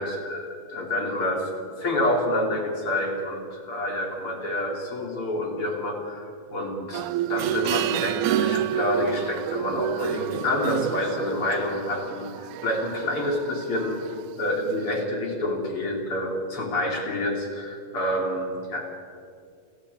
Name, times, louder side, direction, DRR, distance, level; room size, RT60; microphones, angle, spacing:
voice 1, 0.0-14.0 14.4-18.8, left 1 dB, 35° left, 1 dB, 3.9 m, -28 dB
sound 1, 6.9-14.4 14.9-15.0, right 12 dB, 90° right, 1.7 m, -29 dB
28.0 x 14.5 x 9.6 m, 2.4 s
omnidirectional pair, 4.5 m